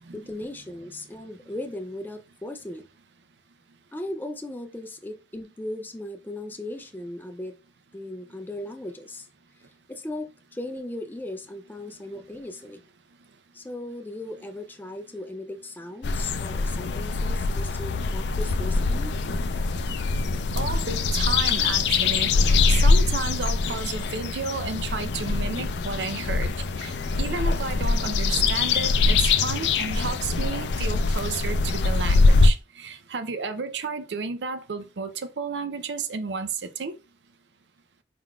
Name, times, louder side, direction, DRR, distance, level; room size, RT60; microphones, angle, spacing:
voice 1, 0.1-2.9 3.9-7.6 7.9-9.3 9.9-12.8 13.5-19.1, left 1 dB, 10° left, 0.4 m, -37 dB
sound 1, 16.0-32.5, left 3 dB, 80° left, 0.4 m, -23 dB
voice 2, 20.6-37.0, right 5 dB, 85° right, 0.5 m, -32 dB
4.7 x 3.8 x 2.3 m
head